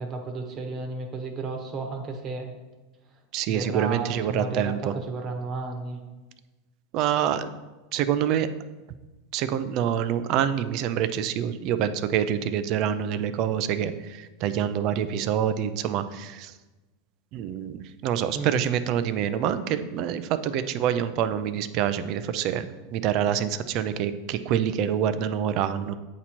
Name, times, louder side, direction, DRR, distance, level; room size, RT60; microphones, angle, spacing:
voice 1, 0.0-2.5 3.5-6.0 18.3-18.6, right 3 dB, 35° right, 3 dB, 1.1 m, -33 dB
voice 2, 3.3-4.9 6.9-7.5 7.9-8.5 9.3-16.5 17.3-22.6 22.9-25.9, right 9 dB, 50° right, 12 dB, 0.4 m, -26 dB
8.3 x 3.0 x 4.2 m, 1.2 s
hypercardioid pair, 115°, 0 cm